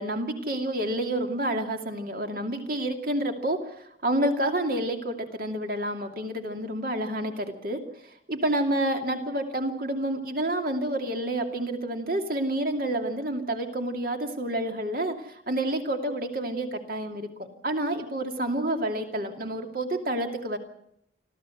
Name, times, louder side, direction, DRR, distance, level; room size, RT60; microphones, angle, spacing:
voice 1, 0.0-17.3 17.6-20.6, right 1 dB, 50° right, 5 dB, 2.5 m, -29 dB
25.5 x 14.5 x 7.8 m, 0.74 s
head